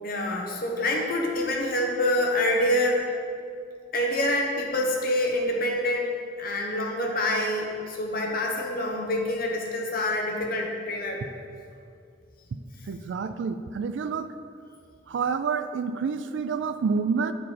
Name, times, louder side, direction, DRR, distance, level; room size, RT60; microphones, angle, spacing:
voice 1, 0.0-3.1 3.9-6.1 6.4-11.2, left 1 dB, 55° left, 0 dB, 1.0 m, -26 dB
voice 2, 12.9-14.3 15.1-17.3, right 5 dB, 85° right, 11 dB, 0.3 m, -28 dB
8.4 x 4.6 x 4.1 m, 2.4 s
head